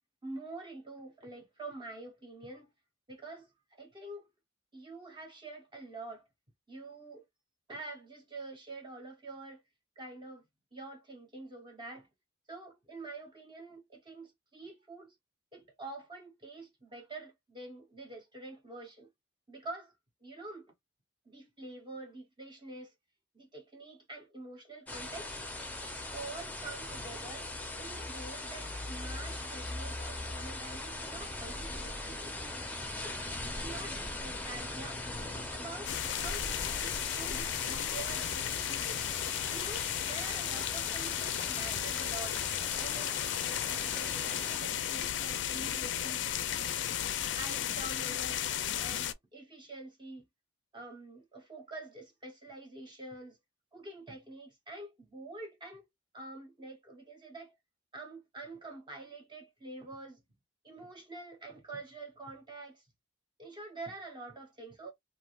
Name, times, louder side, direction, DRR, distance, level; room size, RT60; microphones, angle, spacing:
voice 1, 0.2-2.7 3.1-3.5 3.8-4.3 4.7-6.2 6.7-7.2 7.7-9.6 10.0-10.4 10.7-12.1 12.5-15.2 15.5-19.1 19.5-19.9 20.2-20.7 21.3-22.9 23.3-25.4 25.8-27.5 27.8-32.3 33.0-33.2 33.6-35.0 35.3-39.1 39.5-42.4 42.8-43.2 43.4-46.3 47.2-48.4 48.8-50.2 50.7-53.4 53.7-55.9 56.1-57.5 57.9-60.2 60.6-62.8 63.4-64.9, right 2 dB, 25° right, 0.8 m, -46 dB
sound 1, 24.9-44.6, left 2 dB, 10° left, 0.6 m, -40 dB
sound 2, 35.8-49.1, left 11 dB, 60° left, 0.4 m, -34 dB
3.2 x 2.7 x 2.4 m
head